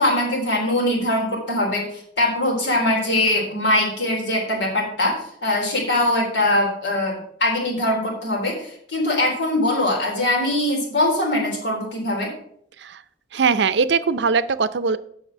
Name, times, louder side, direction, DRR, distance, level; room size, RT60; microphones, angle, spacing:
voice 1, 0.0-12.3, left 1 dB, 90° left, -1 dB, 3.7 m, -22 dB
voice 2, 13.3-15.0, right 5 dB, 70° right, 14 dB, 0.5 m, -20 dB
8.0 x 6.4 x 6.2 m, 0.67 s
head